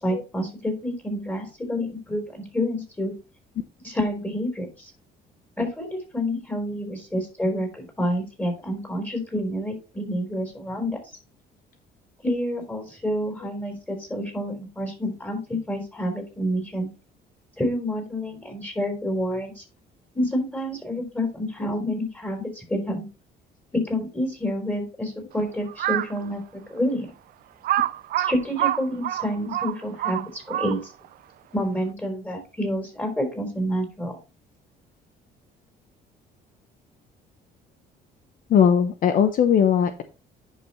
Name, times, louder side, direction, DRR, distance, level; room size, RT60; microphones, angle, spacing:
voice 1, 0.0-3.1 3.8-4.9 5.6-11.0 12.2-16.9 17.6-19.6 20.1-23.1 23.7-27.1 28.2-30.9 31.5-34.2, equal, 10° left, 3 dB, 3.8 m, -28 dB
Crow, 25.7-26.2 26.8-26.9 27.6-31.1, right 13 dB, 60° right, 0.5 m, -26 dB
voice 2, 38.5-40.0, left 8 dB, 55° left, 9 dB, 0.8 m, -19 dB
10.0 x 5.6 x 3.1 m, 0.30 s
cardioid pair, 110°, 17 cm